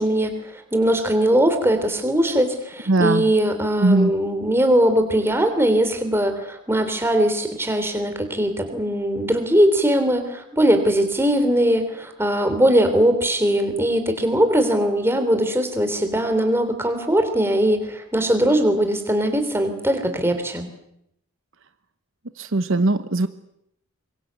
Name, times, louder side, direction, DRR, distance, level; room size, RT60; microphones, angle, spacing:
voice 1, 0.0-20.7, right 1 dB, 10° right, 7 dB, 3.3 m, -20 dB
voice 2, 2.9-3.3 3.8-4.1 22.4-23.3, right 2 dB, 60° right, 10 dB, 1.0 m, -19 dB
25.5 x 23.0 x 8.2 m, 0.79 s
head